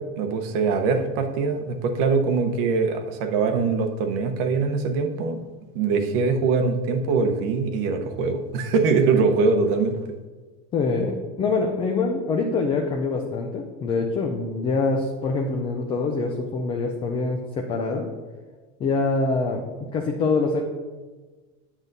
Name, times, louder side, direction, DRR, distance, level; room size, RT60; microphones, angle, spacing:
voice 1, 0.0-5.4 5.7-10.0, right 4 dB, 60° right, 5 dB, 1.0 m, -23 dB
voice 2, 10.7-18.1 18.8-19.6 19.9-20.6, left 3 dB, 15° left, 2 dB, 0.3 m, -25 dB
9.9 x 7.2 x 2.6 m, 1.3 s
supercardioid pair, 165°, 32 cm